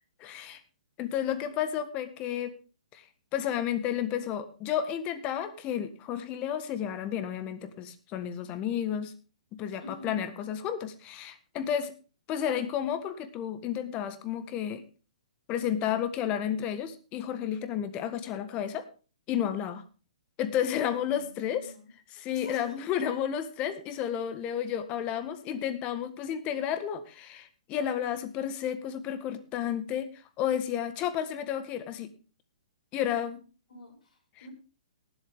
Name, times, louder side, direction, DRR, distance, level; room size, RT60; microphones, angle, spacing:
voice 1, 0.2-0.6 1.0-2.5 2.9-3.0 3.3-9.1 9.6-11.9 12.3-14.8 15.5-18.9 19.3-19.8 20.4-21.7 22.1-30.1 30.4-32.1 32.9-33.4, left 9 dB, 30° left, 11 dB, 1.6 m, -32 dB
voice 2, 9.8-10.2 20.9-21.9 22.3-22.7 33.7-34.5, left 1 dB, 70° left, 1 dB, 6.9 m, -47 dB
18.5 x 8.0 x 3.7 m, 0.35 s
hypercardioid pair, 130°, 4 cm